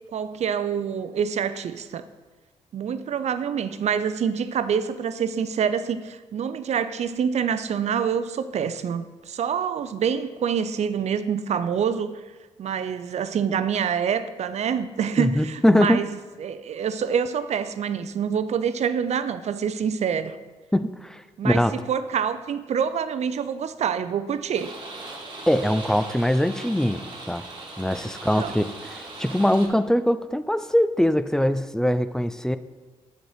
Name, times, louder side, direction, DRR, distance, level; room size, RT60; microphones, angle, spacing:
voice 1, 0.1-2.0 2.7-12.2 12.6-16.1 16.4-20.4 21.4-24.7 28.4-28.5, right 7 dB, 55° right, 12 dB, 0.5 m, -26 dB
voice 2, 15.2-16.0 20.7-21.7 25.5-27.0 27.3-27.4 27.8-32.6, equal, 5° left, 13 dB, 0.4 m, -22 dB
sound 1, 24.5-29.7, right 2 dB, 35° right, 1.6 m, -39 dB
7.7 x 4.5 x 4.8 m, 1.3 s
supercardioid pair, 50°, 14 cm